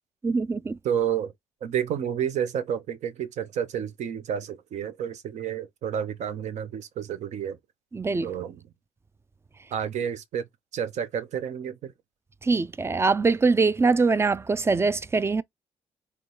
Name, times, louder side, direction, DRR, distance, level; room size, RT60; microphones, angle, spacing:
voice 1, 0.2-0.8 7.9-8.3 12.4-15.4, right 4 dB, 20° right, 0.4 m, -23 dB
voice 2, 0.8-1.3 1.6-7.6 8.2-8.7 9.7-10.5 10.7-11.9, right 9 dB, 65° right, 0.6 m, -30 dB
3.6 x 2.3 x 2.9 m
hypercardioid pair, 50°, 13 cm